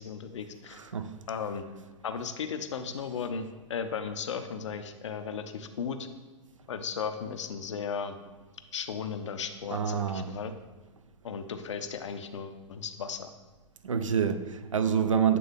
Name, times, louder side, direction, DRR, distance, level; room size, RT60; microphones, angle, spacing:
voice 1, 0.0-0.8 1.3-1.7 2.0-6.1 6.7-8.2 8.7-10.5 11.2-13.3, left 6 dB, 65° left, 9 dB, 0.5 m, -35 dB
voice 2, 0.7-1.1 9.7-10.3 13.8-15.4, right 7 dB, 75° right, 10 dB, 0.5 m, -27 dB
8.4 x 3.5 x 3.4 m, 1.3 s
figure-of-eight pair, 100°, 16 cm